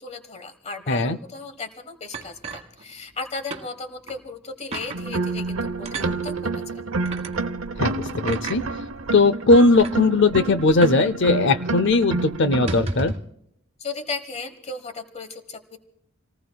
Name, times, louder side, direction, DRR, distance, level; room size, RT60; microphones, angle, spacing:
voice 1, 0.0-6.8 13.8-15.8, left 4 dB, 35° left, 9 dB, 1.3 m, -36 dB
voice 2, 0.9-1.2 7.8-8.6 9.1-13.1, left 3 dB, 60° left, 15 dB, 0.7 m, -18 dB
sound 1, 2.1-3.2 3.5-3.7 4.1-4.2 4.7-5.0 5.8-6.1 7.0-7.3 8.3-8.6 9.4-9.5 9.7-10.0 10.8-11.1 11.3-11.4 11.8-12.0 12.5-13.3, right 3 dB, 30° right, 1.6 m, -33 dB
sound 2, 4.9-12.8, right 3 dB, 85° right, 0.8 m, -28 dB
28.0 x 19.0 x 2.3 m, 0.75 s
head